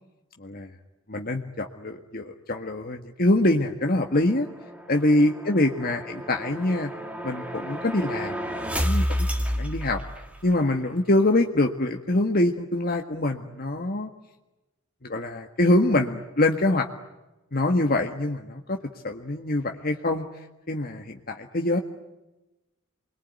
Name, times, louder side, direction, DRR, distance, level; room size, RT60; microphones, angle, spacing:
voice 1, 1.1-4.5 4.9-6.9 7.2-9.3 9.5-10.0 10.4-14.1 15.0-16.9 17.5-18.8 19.0-20.2 20.7-21.8, left 1 dB, 45° left, 3 dB, 1.7 m, -24 dB
sound 1, 3.8-10.6, equal, 5° right, 2.5 m, -31 dB
28.5 x 22.0 x 9.4 m, 1.0 s
head